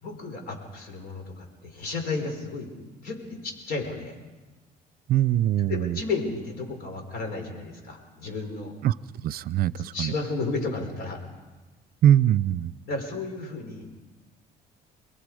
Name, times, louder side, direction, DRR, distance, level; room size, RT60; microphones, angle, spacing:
voice 1, 0.0-2.7 3.0-4.2 5.6-8.7 9.8-11.2 12.9-13.9, left 3 dB, 65° left, 4 dB, 5.0 m, -33 dB
voice 2, 5.1-6.0 8.8-8.9 9.2-10.1 12.0-12.7, right 11 dB, 60° right, 18 dB, 0.6 m, -22 dB
29.5 x 21.0 x 5.0 m, 1.2 s
cardioid pair, 110°, 17 cm